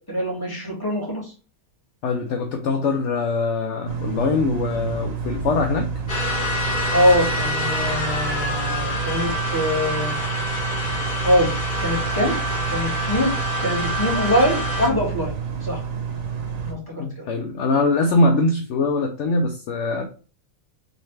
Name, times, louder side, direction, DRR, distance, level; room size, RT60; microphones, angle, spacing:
voice 1, 0.1-1.3 6.9-10.2 11.2-12.4 12.7-13.3 13.6-15.4 15.6-15.8 16.6-17.3, equal, 15° left, -5 dB, 2.1 m, -23 dB
voice 2, 2.0-5.9 17.0-20.1, left 3 dB, 65° left, 3 dB, 0.9 m, -22 dB
sound 1, 3.9-16.7, right 6 dB, 70° right, 1.4 m, -29 dB
sound 2, 6.1-14.9, left 1 dB, 35° left, 1.6 m, -27 dB
4.8 x 3.2 x 3.2 m, 0.37 s
omnidirectional pair, 1.5 m